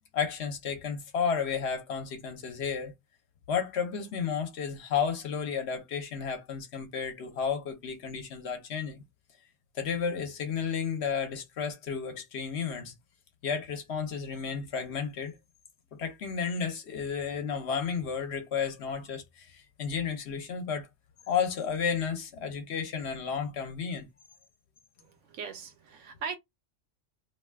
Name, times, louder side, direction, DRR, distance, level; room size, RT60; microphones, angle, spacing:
voice 1, 0.1-2.9 3.5-9.0 9.7-12.9 13.4-15.3 15.9-20.9 21.3-24.1, left 6 dB, 65° left, 0.9 m, -32 dB
voice 2, 25.0-26.4, right 6 dB, 80° right, 1.0 m, -39 dB
2.6 x 2.3 x 3.3 m
omnidirectional pair, 1.3 m